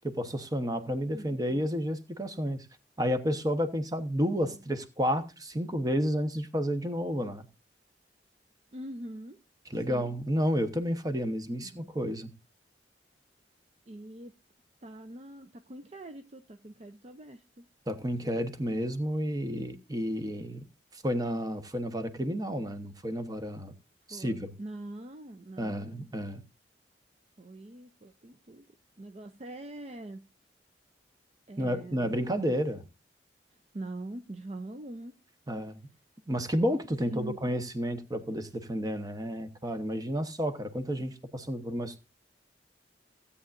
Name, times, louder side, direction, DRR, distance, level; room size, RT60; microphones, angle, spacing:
voice 1, 0.0-2.7 3.0-7.5 9.7-12.3 17.9-20.6 20.9-23.7 24.1-24.5 25.6-26.4 31.6-32.8 35.5-35.9 36.3-42.0, equal, 20° right, 1.0 m, -31 dB
voice 2, 1.1-1.7 4.5-4.7 8.7-9.4 9.9-10.1 11.6-11.9 13.9-14.3 14.8-17.7 24.1-26.1 27.4-28.6 29.0-30.2 31.5-32.2 33.7-35.1 37.0-37.4 41.0-41.1, right 1 dB, 35° right, 0.6 m, -43 dB
16.5 x 8.5 x 2.5 m
head